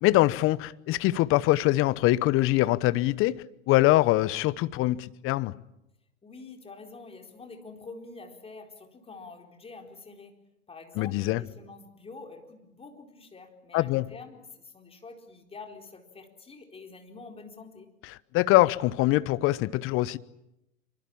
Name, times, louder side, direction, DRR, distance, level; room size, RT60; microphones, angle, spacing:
voice 1, 0.0-5.5 11.0-11.4 13.7-14.1 18.3-20.2, left 17 dB, 30° left, 1.0 m, -23 dB
voice 2, 6.2-10.4 10.7-17.9, left 3 dB, 15° left, 4.3 m, -46 dB
26.5 x 24.5 x 8.8 m
hypercardioid pair, 115°, 44 cm